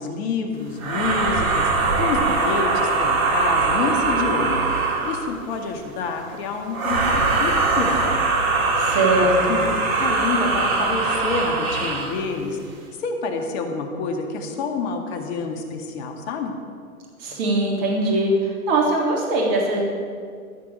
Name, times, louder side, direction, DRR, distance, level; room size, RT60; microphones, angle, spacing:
voice 1, 0.0-4.6 5.0-8.2 9.2-9.6 10.0-12.6 13.0-16.5, left 4 dB, 45° left, 4 dB, 2.1 m, -28 dB
sound 1, 0.8-5.4 6.7-12.2, right 3 dB, 65° right, 2.8 m, -22 dB
voice 2, 8.8-9.6 17.2-19.8, right 2 dB, 40° right, -1 dB, 3.4 m, -21 dB
14.0 x 6.1 x 8.6 m, 2.1 s
hypercardioid pair, 125°, 45 cm